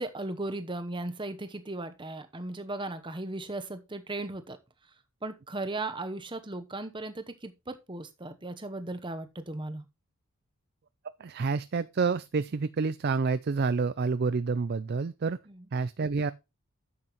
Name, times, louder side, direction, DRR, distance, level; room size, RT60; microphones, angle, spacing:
voice 1, 0.0-4.6 5.2-9.8 15.5-15.7, right 2 dB, 20° right, 0.9 m, -37 dB
voice 2, 11.2-15.4 15.7-16.3, right 4 dB, 45° right, 0.4 m, -28 dB
11.0 x 7.7 x 3.0 m
head